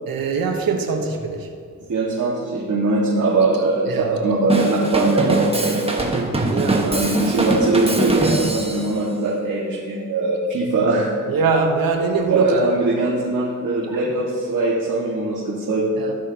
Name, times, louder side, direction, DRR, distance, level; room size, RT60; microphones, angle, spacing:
voice 1, 0.1-1.5 3.9-4.1 6.5-6.9 11.3-12.5 13.9-14.0 16.0-16.2, right 4 dB, 85° right, 4 dB, 1.2 m, -22 dB
voice 2, 1.9-6.2 6.8-11.1 12.3-15.9, right 2 dB, 60° right, -5 dB, 1.9 m, -21 dB
Drum kit / Drum, 4.5-8.9, right 2 dB, 15° right, 1.4 m, -22 dB
16.0 x 6.5 x 2.9 m, 2.2 s
cardioid pair, 60°, 34 cm